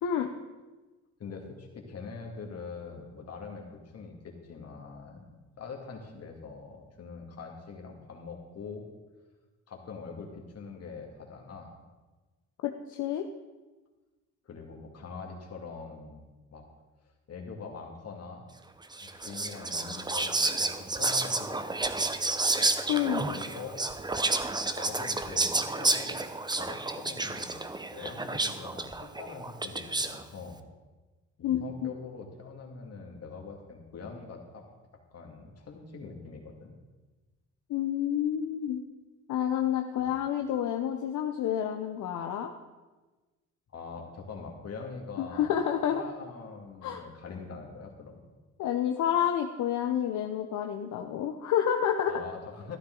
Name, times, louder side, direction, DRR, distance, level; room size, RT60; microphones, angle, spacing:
voice 1, 1.2-8.9 9.7-11.7 14.4-16.2 16.5-16.7 17.3-18.5 19.0-22.1 23.2-24.2 24.8-26.2 26.5-30.6 31.4-34.7 34.9-36.8 40.0-40.2 43.7-45.5 45.9-48.2 52.1-52.8, left 4 dB, 55° left, 2 dB, 2.3 m, -43 dB
voice 2, 12.6-13.2 22.9-23.2 31.4-31.9 37.7-38.8 39.3-42.5 45.2-46.0 46.8-47.0 48.6-52.1, left 10 dB, 75° left, 4 dB, 0.8 m, -29 dB
Whispering, 18.9-30.2, right 3 dB, 15° right, 0.7 m, -30 dB
13.0 x 11.5 x 3.9 m, 1.2 s
cardioid pair, 90°, 30 cm